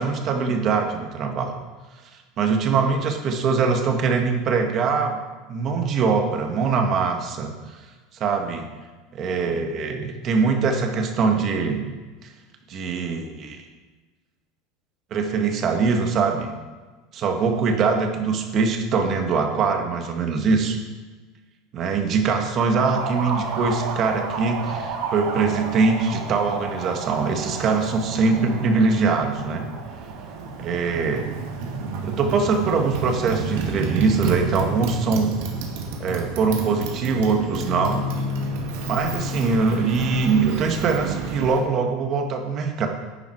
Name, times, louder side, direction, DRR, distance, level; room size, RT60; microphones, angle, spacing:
voice 1, 0.0-1.5 2.4-5.2 5.5-7.5 8.2-8.7 9.1-11.8 12.2-12.3 12.7-13.6 15.1-16.5 17.1-20.8 21.7-29.7 30.6-31.3 32.0-35.3 36.0-38.0 38.8-42.9, right 4 dB, 35° right, 4 dB, 1.6 m, -22 dB
Motorcycle, 22.7-41.7, right 3 dB, 65° right, 2.2 m, -30 dB
11.0 x 9.3 x 4.6 m, 1.3 s
supercardioid pair, 150°, 0 cm